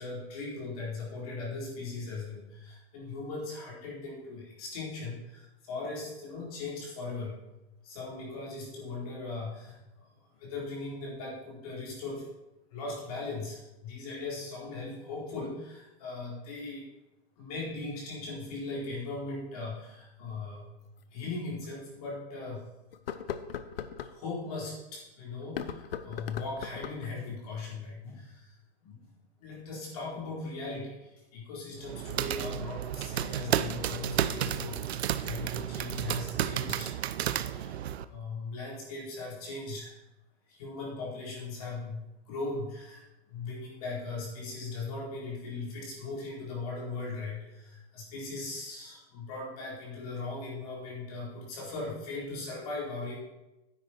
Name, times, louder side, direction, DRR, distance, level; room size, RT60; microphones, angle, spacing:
voice 1, 0.0-7.4 7.8-10.1 10.3-12.2 12.7-16.9 17.4-20.7 21.1-22.7 24.0-28.6 28.8-36.9 37.2-40.0 40.5-43.0 43.3-53.2, left 3 dB, 35° left, -4 dB, 4.3 m, -39 dB
sound 1, 21.0-21.1 21.6-21.7 22.9-24.1 25.4-27.1, left 8 dB, 60° left, 0.8 m, -38 dB
sound 2, 31.8-38.0, right 10 dB, 75° right, 0.7 m, -32 dB
10.0 x 8.9 x 4.6 m, 0.98 s
hypercardioid pair, 170°, 32 cm